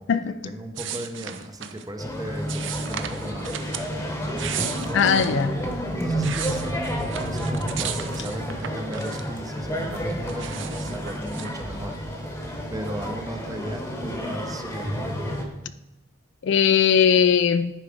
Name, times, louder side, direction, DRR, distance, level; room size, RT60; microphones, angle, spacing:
voice 1, 0.0-5.5 6.0-12.3 12.7-15.2, right 1 dB, 20° right, 0.7 m, -37 dB
sound 1, 0.7-1.9 2.5-3.9 4.2-5.4 5.9-9.5 9.8-11.6, right 8 dB, 70° right, 0.6 m, -35 dB
sound 2, 2.0-15.4, equal, 15° left, 1.0 m, -30 dB
voice 2, 4.9-5.5 16.4-17.7, left 7 dB, 65° left, 0.4 m, -19 dB
10.5 x 4.7 x 5.0 m
head